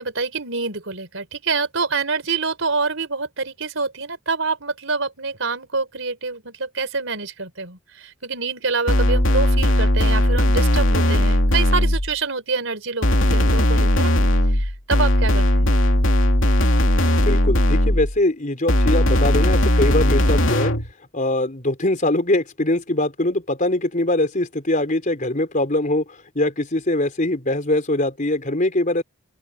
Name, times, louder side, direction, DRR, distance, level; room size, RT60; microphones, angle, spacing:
voice 1, 0.0-14.1 14.4-15.7, right 4 dB, 75° right, 4.1 m, -26 dB
sound 1, 8.9-12.1 13.0-18.2 18.7-20.9, left 1 dB, 80° left, 2.6 m, -18 dB
voice 2, 17.3-20.7 21.1-26.0 26.3-29.0, left 1 dB, 40° left, 4.1 m, -22 dB
open air
head